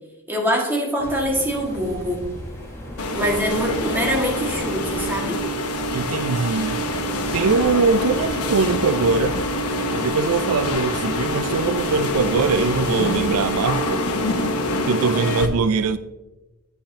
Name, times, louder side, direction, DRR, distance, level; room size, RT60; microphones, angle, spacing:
voice 1, 0.3-2.2 3.1-5.4, equal, 10° right, 1.8 m, -24 dB
sound 1, 1.0-14.0, equal, 10° left, 1.6 m, -36 dB
sound 2, 3.0-15.5, left 1 dB, 90° left, 1.0 m, -25 dB
voice 2, 5.9-6.8 7.3-9.4 9.9-14.0 14.8-16.0, right 4 dB, 80° right, 0.4 m, -22 dB
10.5 x 8.5 x 2.8 m
head